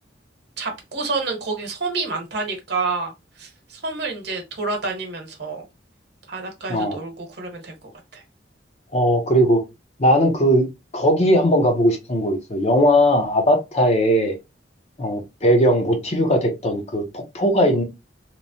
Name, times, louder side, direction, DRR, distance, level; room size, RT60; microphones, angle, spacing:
voice 1, 0.6-3.1 3.4-5.6 6.3-7.7 8.1-8.2, right 3 dB, 65° right, 0.9 m, -28 dB
voice 2, 8.9-9.6 10.0-10.7 10.9-14.3 15.0-17.8, equal, 40° left, 0.6 m, -18 dB
3.0 x 2.1 x 2.6 m
head